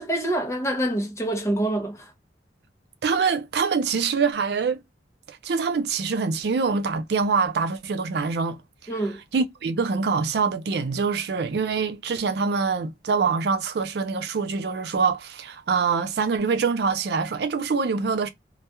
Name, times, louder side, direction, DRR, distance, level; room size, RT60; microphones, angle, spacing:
voice 1, 0.0-2.1 8.9-9.2, right 1 dB, 15° left, 0.6 m, -26 dB
voice 2, 3.0-4.8 5.3-8.6 9.3-18.3, right 5 dB, 65° right, 0.4 m, -24 dB
2.2 x 2.2 x 2.9 m
head